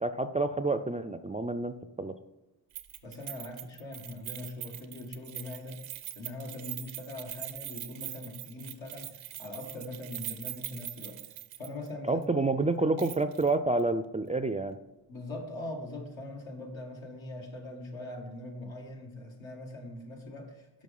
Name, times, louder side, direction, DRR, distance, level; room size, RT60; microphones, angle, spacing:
voice 1, 0.0-2.2 12.1-14.8, right 2 dB, 15° right, 10 dB, 0.4 m, -29 dB
Keys jangling, 2.7-11.9 12.2-12.3 13.0-13.5 13.8-13.9, right 13 dB, 90° right, 0.7 m, -42 dB
voice 2, 3.0-13.0 15.1-20.8, left 2 dB, 75° left, 0 dB, 2.1 m, -42 dB
6.4 x 5.2 x 5.4 m, 1.0 s
cardioid pair, 60°, 46 cm